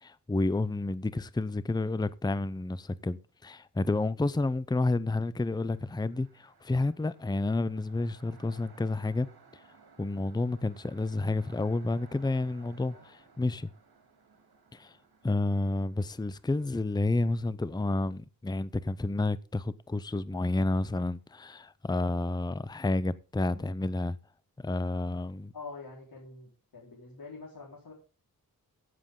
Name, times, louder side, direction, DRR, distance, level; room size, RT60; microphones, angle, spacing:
voice 1, 0.0-9.3 10.0-13.7 14.7-15.0 15.2-24.2 24.6-25.5, left 2 dB, 10° left, 0.5 m, -30 dB
sound 1, 5.4-16.8, right 5 dB, 85° right, 2.7 m, -59 dB
voice 2, 25.5-27.9, left 4 dB, 80° left, 4.4 m, -45 dB
16.0 x 7.7 x 3.8 m
wide cardioid pair, 105°, 36 cm